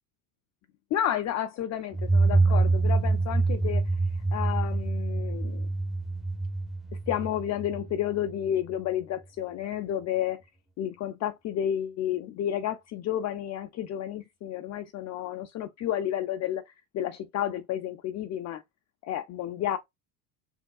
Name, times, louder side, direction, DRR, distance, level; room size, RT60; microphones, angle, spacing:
voice 1, 0.9-4.0 4.3-5.7 7.1-10.4 10.8-18.6 19.0-19.8, left 11 dB, 40° left, 0.5 m, -31 dB
sound 1, 1.9-8.5, right 3 dB, ahead, 0.7 m, -26 dB
3.6 x 3.4 x 2.3 m
supercardioid pair, 90°, 42 cm